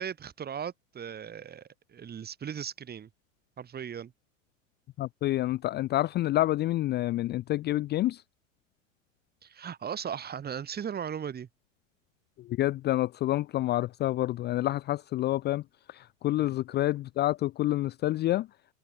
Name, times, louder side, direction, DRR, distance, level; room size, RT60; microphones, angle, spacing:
voice 1, 0.0-3.1 3.6-4.1 9.4-11.5 16.4-16.6, right 8 dB, 25° right, 5.0 m, -37 dB
voice 2, 5.0-8.2 12.4-15.6 15.9-18.5, left 15 dB, 25° left, 0.6 m, -28 dB
open air
hypercardioid pair, 120°, 39 cm